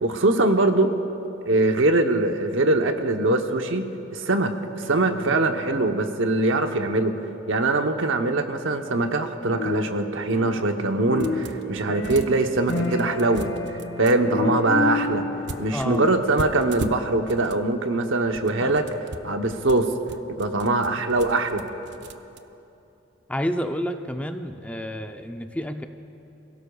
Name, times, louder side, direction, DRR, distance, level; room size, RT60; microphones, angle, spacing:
voice 1, 0.0-0.9 1.5-7.1 7.5-15.3 15.6-18.9 19.2-19.9 20.4-21.7, right 2 dB, 85° right, 6 dB, 0.9 m, -22 dB
sound 1, 4.8-12.7, right 2 dB, 85° left, 1.5 m, -45 dB
sound 2, 9.5-10.8 11.1-16.4, left 3 dB, 70° left, 1.3 m, -30 dB
sound 3, 11.2-11.7 12.0-14.2 15.5-17.6 18.2-22.4, right 3 dB, 65° right, 0.6 m, -38 dB
voice 2, 15.7-16.0 18.6-18.8 23.3-25.9, equal, 5° left, 7 dB, 0.5 m, -29 dB
28.5 x 17.0 x 2.3 m, 2.9 s
head